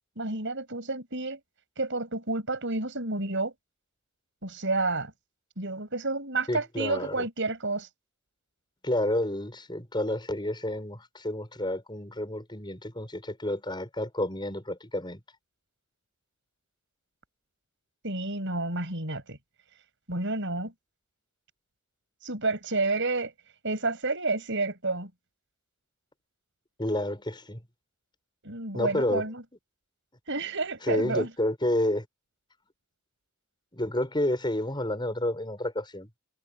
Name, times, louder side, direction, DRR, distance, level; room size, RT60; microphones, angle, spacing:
voice 1, 0.2-1.4 1.8-3.5 4.4-5.1 5.6-7.9 18.0-19.4 20.1-20.7 22.2-23.3 23.6-25.1 28.4-29.4 30.3-31.3, right 3 dB, 55° right, 7.6 m, -30 dB
voice 2, 6.5-7.3 8.8-15.2 26.8-27.6 28.7-29.3 30.8-32.1 33.7-36.1, left 1 dB, 20° left, 7.5 m, -30 dB
head